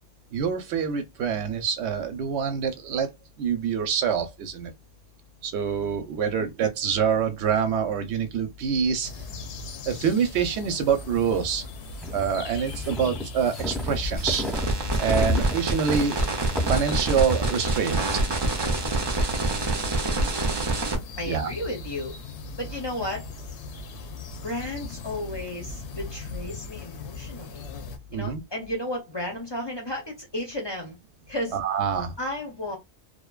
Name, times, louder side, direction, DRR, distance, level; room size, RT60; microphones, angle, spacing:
voice 1, 0.3-3.1 3.4-4.7 5.4-9.1 9.9-11.6 12.1-14.6 15.0-16.2 16.6-18.0 21.3-21.5 28.1-28.4 31.5-32.1, right 7 dB, 90° right, 0.9 m, -26 dB
sound 1, 9.0-28.0, left 3 dB, 85° left, 0.9 m, -39 dB
sound 2, 11.8-19.7, left 1 dB, ahead, 0.8 m, -32 dB
sound 3, 14.2-21.0, right 2 dB, 45° right, 0.3 m, -26 dB
voice 2, 20.0-20.3 21.2-22.2 22.6-23.3 24.4-27.6 28.1-31.0 31.3-31.6 32.2-32.8, left 1 dB, 30° left, 0.5 m, -33 dB
2.5 x 2.1 x 2.2 m
omnidirectional pair, 1.1 m